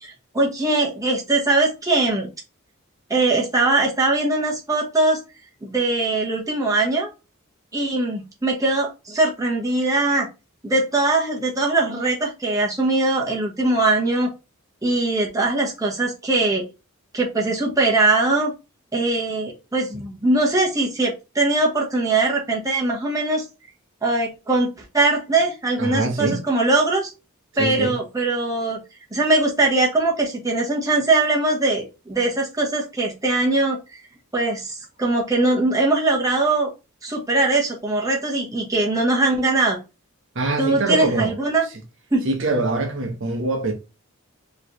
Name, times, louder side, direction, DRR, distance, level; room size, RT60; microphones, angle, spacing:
voice 1, 0.0-2.3 3.1-5.2 5.6-7.1 7.7-10.3 10.6-14.3 14.8-16.6 17.1-18.5 18.9-23.4 24.0-27.1 27.6-28.8 29.1-33.8 34.3-36.7 37.0-39.8 40.6-41.6 42.1-42.3, right 2 dB, 15° right, 1.1 m, -21 dB
voice 2, 25.8-26.4 27.6-27.9 40.3-41.3 42.2-43.7, right 2 dB, 60° right, 1.0 m, -23 dB
4.9 x 3.1 x 3.0 m
head